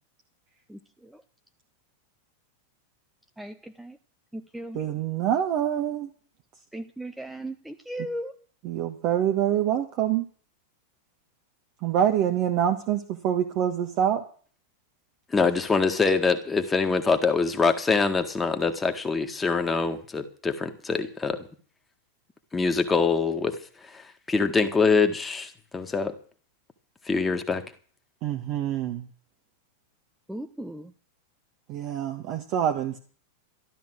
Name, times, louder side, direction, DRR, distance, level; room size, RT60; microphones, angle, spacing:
voice 1, 0.7-1.1 3.4-4.0 4.3-4.8 6.7-8.4 30.3-30.9, right 1 dB, 5° right, 7 dB, 0.7 m, -37 dB
voice 2, 4.7-6.1 8.6-10.2 11.8-14.2 28.2-29.1 31.7-33.0, right 10 dB, 40° right, 4 dB, 1.4 m, -26 dB
voice 3, 15.3-21.5 22.5-23.6 23.8-26.1 27.1-27.6, left 4 dB, 15° left, 7 dB, 1.8 m, -24 dB
13.0 x 12.0 x 6.4 m, 0.43 s
figure-of-eight pair, 90°, 0 cm